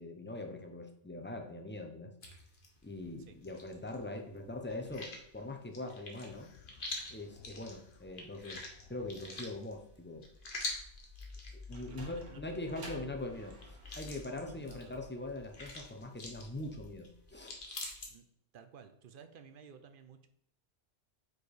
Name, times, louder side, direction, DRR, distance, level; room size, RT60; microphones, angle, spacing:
voice 1, 0.0-2.1 2.8-6.5 7.1-8.6 8.9-10.2 11.5-17.6, left 2 dB, 10° left, 4 dB, 0.6 m, -42 dB
sound 1, 2.2-4.0 4.3-18.1, left 2 dB, 45° left, 1.3 m, -46 dB
sound 2, 6.3-9.7, left 6 dB, 90° left, 1.1 m, -60 dB
Sliding door, 11.4-16.6, right 3 dB, 75° right, 1.5 m, -54 dB
voice 2, 11.9-12.4 14.4-15.0 18.1-18.2 18.5-20.3, right 7 dB, 55° right, 9 dB, 0.7 m, -54 dB
5.0 x 4.5 x 4.8 m, 0.71 s
omnidirectional pair, 1.3 m